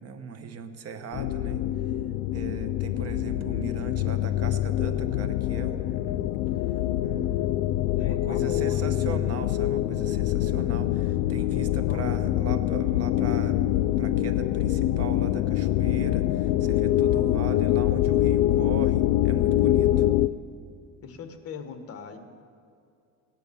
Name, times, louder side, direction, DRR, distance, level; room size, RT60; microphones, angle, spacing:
voice 1, 0.0-1.7 2.3-6.4 7.0-7.6 8.0-13.6 14.0-19.9, right 6 dB, 40° right, 9 dB, 1.0 m, -39 dB
sound 1, 1.1-20.3, left 13 dB, 85° left, 0.5 m, -25 dB
voice 2, 8.0-8.8 11.9-12.0 17.1-17.5 19.9-20.4 21.0-22.2, left 6 dB, 40° left, 7 dB, 1.4 m, -40 dB
16.5 x 10.5 x 7.0 m, 2.4 s
cardioid pair, 135°, 36 cm